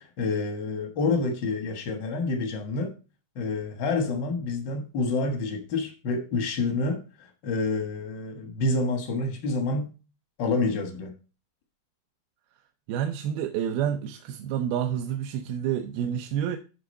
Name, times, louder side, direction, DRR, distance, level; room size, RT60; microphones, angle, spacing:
voice 1, 0.0-2.9 3.3-9.9 10.4-11.1, left 3 dB, 75° left, 1.0 m, -28 dB
voice 2, 12.9-16.6, right 9 dB, 80° right, 2.5 m, -29 dB
11.0 x 3.7 x 5.3 m
omnidirectional pair, 4.4 m